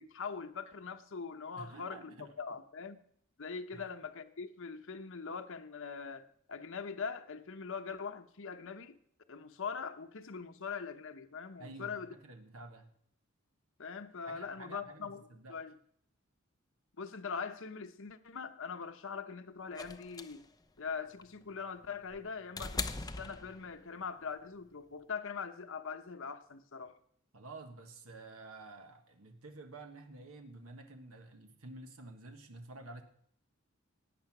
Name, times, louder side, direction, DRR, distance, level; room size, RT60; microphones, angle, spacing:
voice 1, 0.0-2.0 2.4-3.0 3.4-9.0 9.3-12.1 13.8-15.2 15.5-15.7 17.0-20.4 20.8-22.9 23.1-27.0, left 5 dB, 65° left, 0.9 m, -42 dB
voice 2, 1.6-2.3 3.7-4.0 11.6-12.9 14.3-15.6 27.3-33.0, right 2 dB, 85° right, 1.5 m, -50 dB
sound 1, 19.8-24.0 25.3-25.4, left 4 dB, 20° left, 0.7 m, -41 dB
17.5 x 9.0 x 6.0 m
head